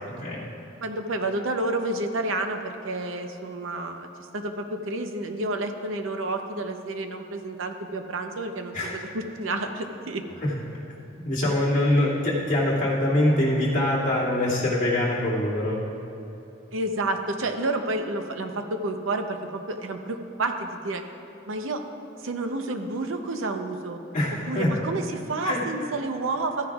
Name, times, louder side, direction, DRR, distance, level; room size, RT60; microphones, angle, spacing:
voice 1, 0.8-10.2 16.7-21.0 21.5-21.8 22.2-24.0 24.5-26.7, right 2 dB, 75° right, 6 dB, 0.7 m, -30 dB
voice 2, 11.2-15.8 24.1-24.7 25.5-25.6, left 1 dB, 40° left, -7 dB, 2.4 m, -24 dB
14.5 x 9.8 x 2.4 m, 3.0 s
head